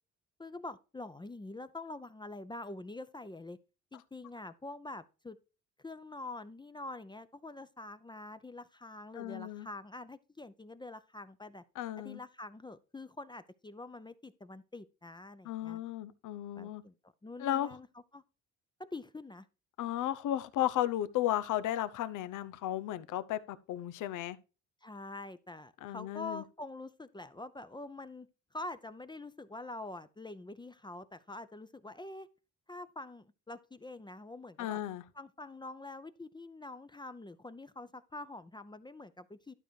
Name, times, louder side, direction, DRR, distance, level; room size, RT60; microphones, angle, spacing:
voice 1, 0.4-3.6 3.9-5.4 5.8-11.6 12.0-15.8 16.5-16.9 17.2-17.9 18.1-18.2 18.8-19.5 24.8-32.3 32.7-34.8 35.1-39.5, left 2 dB, 15° left, 0.6 m, -45 dB
voice 2, 9.1-9.7 11.8-12.2 15.4-16.8 17.4-17.7 19.8-24.4 25.8-26.4 34.6-35.0, left 12 dB, 85° left, 0.8 m, -34 dB
12.0 x 5.0 x 4.5 m
cardioid pair, 90°, 30 cm